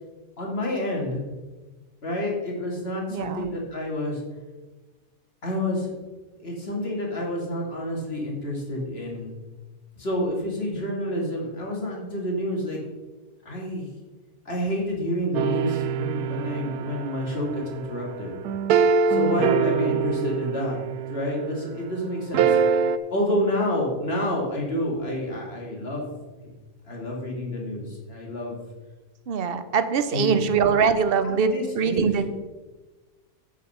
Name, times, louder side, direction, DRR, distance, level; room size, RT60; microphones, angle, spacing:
voice 1, 0.4-1.2 2.0-4.2 5.4-5.9 6.4-9.3 10.0-12.8 13.4-13.9 14.5-18.3 19.1-20.8 21.1-22.6 23.1-26.1 26.4-26.5 26.9-28.7 30.1-30.4 31.2-32.1, left 1 dB, 40° left, -2 dB, 2.6 m, -28 dB
voice 2, 3.1-3.5 19.9-20.1 29.3-32.2, right 6 dB, 50° right, 10 dB, 0.8 m, -23 dB
sound 1, 15.3-21.6 22.3-23.0, right 6 dB, 90° right, 1.2 m, -24 dB
8.7 x 7.1 x 5.6 m, 1.2 s
omnidirectional pair, 1.6 m